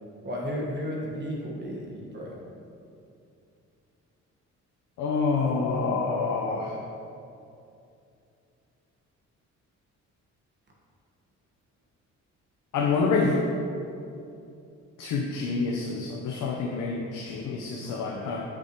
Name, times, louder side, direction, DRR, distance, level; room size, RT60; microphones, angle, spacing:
voice 1, 0.2-2.3, equal, 35° right, -3 dB, 1.3 m, -33 dB
voice 2, 5.0-6.8 12.7-13.3 15.0-18.4, left 4 dB, 80° left, -1 dB, 0.7 m, -27 dB
8.3 x 6.0 x 2.9 m, 2.6 s
cardioid pair, 90°, 30 cm